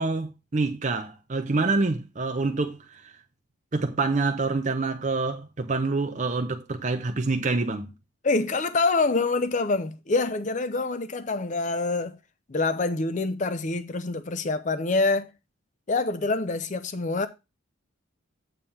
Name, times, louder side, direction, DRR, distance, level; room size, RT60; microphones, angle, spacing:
voice 1, 0.0-3.1 3.7-7.9, right 3 dB, 35° right, 0.6 m, -27 dB
voice 2, 8.2-12.2 12.5-15.3 15.9-17.3, left 3 dB, 35° left, 0.6 m, -26 dB
8.9 x 3.3 x 5.6 m
head